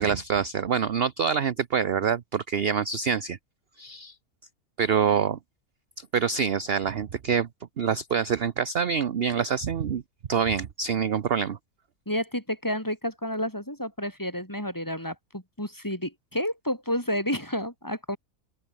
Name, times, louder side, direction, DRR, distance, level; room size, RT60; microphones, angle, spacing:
voice 1, 0.0-3.4 3.8-4.1 4.8-5.4 6.0-7.5 7.8-10.0 10.3-11.6, right 7 dB, 50° right, 0.9 m, -26 dB
voice 2, 12.1-18.2, equal, 10° left, 5.3 m, -30 dB
open air
omnidirectional pair, 1.5 m